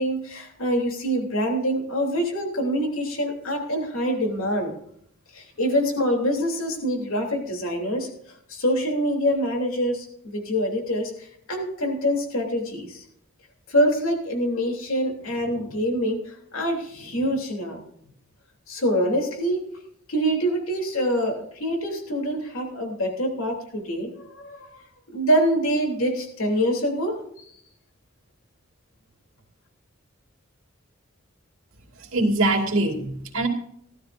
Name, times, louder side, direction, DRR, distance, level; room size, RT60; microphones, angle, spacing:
voice 1, 0.0-4.7 5.3-8.1 8.5-11.1 11.5-13.0 13.7-16.2 16.5-17.8 18.7-19.6 20.1-24.6 25.1-27.2, equal, 80° left, 2 dB, 3.1 m, -25 dB
voice 2, 32.1-33.5, right 2 dB, 75° right, 1 dB, 2.7 m, -23 dB
18.0 x 12.5 x 2.6 m, 0.69 s
head